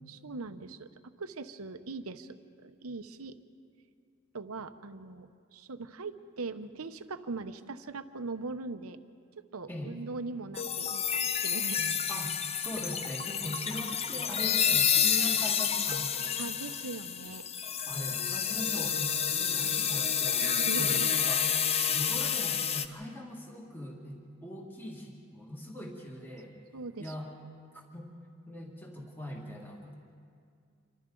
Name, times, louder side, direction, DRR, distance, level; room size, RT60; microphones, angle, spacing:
voice 1, 0.1-2.4 2.6-3.4 4.3-9.0 9.5-11.9 16.4-17.5 20.4-21.1 26.7-27.1, right 3 dB, 90° right, 10 dB, 0.9 m, -40 dB
sound 1, 10.5-22.9, left 8 dB, 30° left, 0.6 m, -29 dB
voice 2, 12.1-16.5 17.8-21.5 21.9-26.6 27.0-27.3 27.7-28.1 28.5-29.9, equal, 10° left, -1 dB, 1.8 m, -41 dB
28.0 x 24.5 x 3.9 m, 2.2 s
head